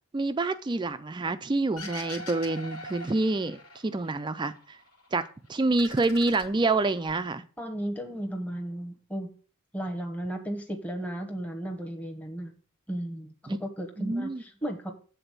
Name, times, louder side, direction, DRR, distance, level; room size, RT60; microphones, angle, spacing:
voice 1, 0.1-4.5 5.1-5.2 5.5-7.4 13.5-13.6 14.0-14.4, right 2 dB, 20° right, 12 dB, 0.3 m, -27 dB
sound 1, 1.8-4.1 4.4-5.3 5.6-7.1, left 1 dB, 85° left, 2.4 m, -43 dB
voice 2, 7.6-9.3 9.7-12.5 12.9-14.9, right 1 dB, 5° left, 2 dB, 1.0 m, -35 dB
8.0 x 4.0 x 6.6 m, 0.40 s
head